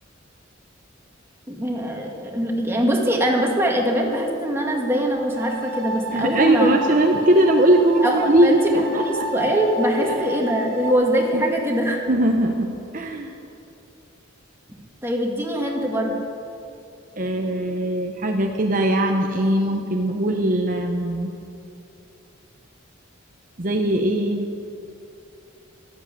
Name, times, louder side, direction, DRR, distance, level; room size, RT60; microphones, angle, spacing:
voice 1, 1.5-6.7 8.0-12.0 15.0-16.2, equal, 10° right, 0 dB, 2.0 m, -23 dB
sound 1, 5.3-10.9, right 1 dB, 80° right, 1.3 m, -31 dB
voice 2, 6.1-9.3 10.0-10.3 11.3-11.4 12.1-13.4 17.2-21.3 23.6-24.4, right 1 dB, 40° right, 3 dB, 0.9 m, -20 dB
13.0 x 12.5 x 8.5 m, 2.7 s
head